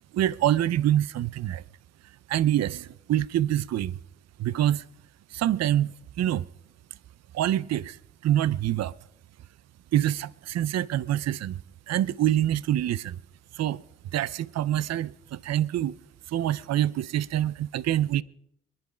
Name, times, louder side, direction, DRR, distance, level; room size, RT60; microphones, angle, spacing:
voice 1, 0.1-1.6 2.3-4.0 4.4-4.8 5.3-6.5 7.3-8.0 8.2-8.9 9.9-11.6 11.9-13.2 13.5-13.8 14.1-16.0 16.3-18.2, right 12 dB, 60° right, 0.6 m, -26 dB
22.5 x 10.5 x 5.0 m
cardioid pair, 90°, 30 cm